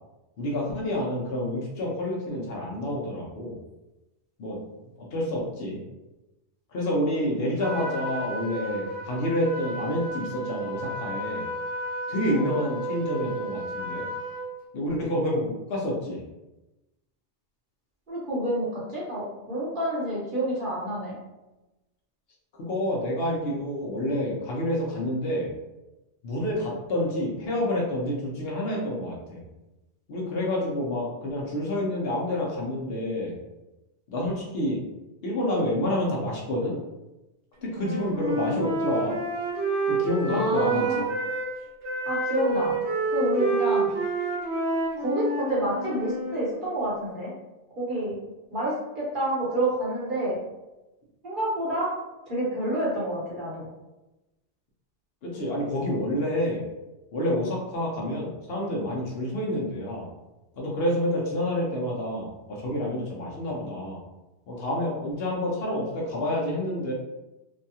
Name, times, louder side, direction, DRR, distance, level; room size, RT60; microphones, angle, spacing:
voice 1, 0.4-3.6 4.4-4.6 5.0-5.8 6.7-11.4 12.1-14.1 14.7-16.2 22.6-25.5 26.2-29.4 30.1-33.3 34.1-34.8 35.2-36.8 37.6-39.2 39.8-41.0 55.2-56.6 57.1-60.1 60.5-64.0 64.5-66.9, left 1 dB, 65° left, -3 dB, 0.8 m, -28 dB
Trumpet, 7.6-14.5, right 1 dB, 35° left, 1.4 m, -33 dB
voice 2, 18.1-21.2 40.3-41.1 42.1-42.8 43.1-43.9 45.0-47.3 47.8-48.2 48.5-50.4 51.2-51.9 52.2-53.7, right 1 dB, 50° right, -7 dB, 1.0 m, -28 dB
Wind instrument woodwind instrument, 37.7-41.5 41.8-46.3, right 2 dB, 70° right, 1.1 m, -28 dB
2.7 x 2.2 x 2.7 m, 1.0 s
omnidirectional pair, 1.2 m